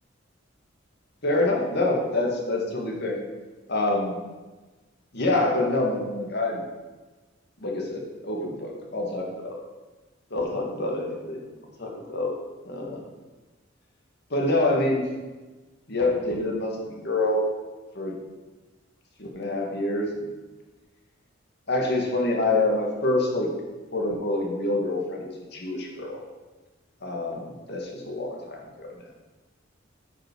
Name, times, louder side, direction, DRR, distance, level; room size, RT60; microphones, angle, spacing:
voice 1, 1.2-3.2 3.7-4.2 5.1-6.6 7.6-9.6 10.3-11.4 11.8-12.3 12.6-13.0 14.3-15.1 15.9-17.4 17.9-18.1 19.2-20.3 21.7-23.5 23.9-26.2 27.0-28.9, left 2 dB, 55° left, 0 dB, 2.1 m, -26 dB
9.6 x 5.8 x 6.2 m, 1.2 s
head